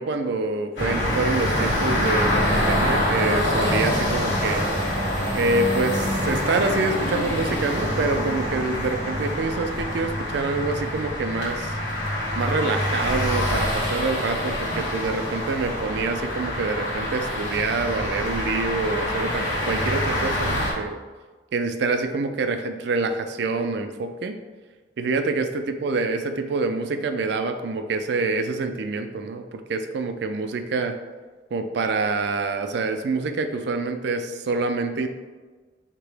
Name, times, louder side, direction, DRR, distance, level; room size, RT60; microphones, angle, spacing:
voice 1, 0.0-4.7 5.3-11.8 12.4-21.0 21.5-24.4 25.0-25.5 25.8-30.9 31.5-35.1, right 3 dB, 65° right, 7 dB, 0.4 m, -26 dB
sound 1, 0.8-20.7, left 1 dB, 90° left, 1.3 m, -25 dB
4.6 x 2.9 x 3.3 m, 1.3 s
head